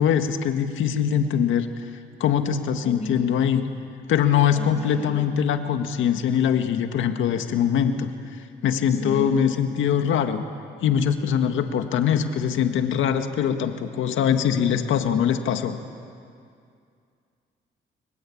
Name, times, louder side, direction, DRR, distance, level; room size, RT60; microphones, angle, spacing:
voice 1, 0.0-1.7 2.2-3.6 4.1-8.1 8.6-10.4 10.8-15.8, left 8 dB, 80° left, 7 dB, 1.9 m, -22 dB
voice 2, 2.8-3.1 4.5-4.7 5.0-5.2 9.0-9.3, left 2 dB, 35° left, 2 dB, 6.2 m, -32 dB
30.0 x 22.5 x 8.7 m, 2.3 s
cardioid pair, 90°, 20 cm